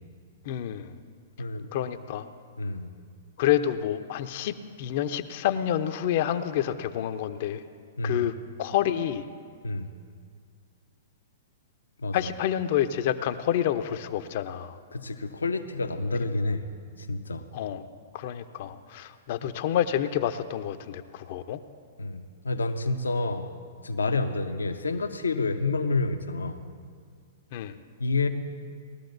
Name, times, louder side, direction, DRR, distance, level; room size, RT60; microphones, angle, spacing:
voice 1, 0.4-0.9 1.7-2.3 3.4-7.6 8.0-8.3 8.6-9.2 12.1-14.8 17.5-17.8 18.1-21.6 27.5-27.7, left 11 dB, 50° left, 10 dB, 0.7 m, -28 dB
voice 2, 1.4-1.7 2.6-2.9 8.0-8.2 9.6-9.9 12.0-12.3 14.9-16.7 17.0-17.5 19.4-19.5 22.0-23.5 23.8-26.6 28.0-28.3, left 3 dB, 85° left, 7 dB, 0.8 m, -29 dB
20.0 x 13.0 x 2.6 m, 2.1 s
hypercardioid pair, 115°, 0 cm